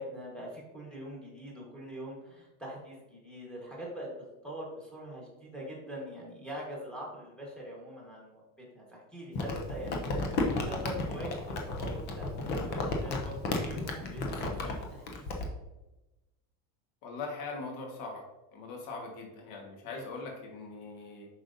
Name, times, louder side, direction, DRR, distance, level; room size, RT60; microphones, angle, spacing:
voice 1, 0.0-12.3 12.5-15.3 19.9-20.3, equal, ahead, -3 dB, 1.2 m, -43 dB
Crumpling crinkling, 9.4-15.5, left 2 dB, 25° left, 0.4 m, -33 dB
voice 2, 17.0-18.2 18.5-21.3, left 3 dB, 45° left, 1 dB, 1.4 m, -41 dB
7.1 x 5.3 x 2.6 m, 1.0 s
cardioid pair, 175°, 48 cm